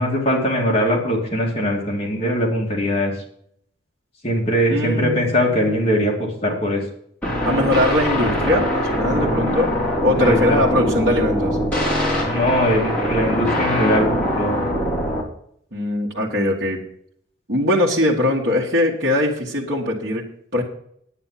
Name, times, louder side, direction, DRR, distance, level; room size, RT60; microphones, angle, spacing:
voice 1, 0.0-3.1 4.2-6.8 10.1-10.6 12.3-14.6, equal, 30° left, -2 dB, 2.6 m, -21 dB
voice 2, 4.7-5.7 7.4-9.7 10.0-11.6 15.7-16.8 17.5-20.2 20.5-20.6, left 1 dB, 55° right, -5 dB, 1.8 m, -21 dB
sound 1, 7.2-15.2, equal, 10° left, 3.4 m, -22 dB
9.7 x 9.2 x 5.8 m, 0.66 s
head